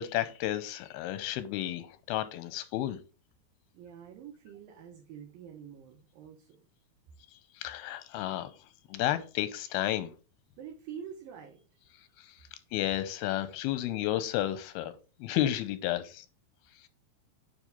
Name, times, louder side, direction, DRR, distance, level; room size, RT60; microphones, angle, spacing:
voice 1, 0.0-3.0 7.6-8.5 8.9-10.1 12.2-12.3 12.7-14.9 15.2-16.3, left 13 dB, 90° left, 2.6 m, -32 dB
voice 2, 3.7-6.6 10.6-12.1, right 8 dB, 75° right, 2.6 m, -47 dB
9.4 x 3.5 x 3.9 m
omnidirectional pair, 4.5 m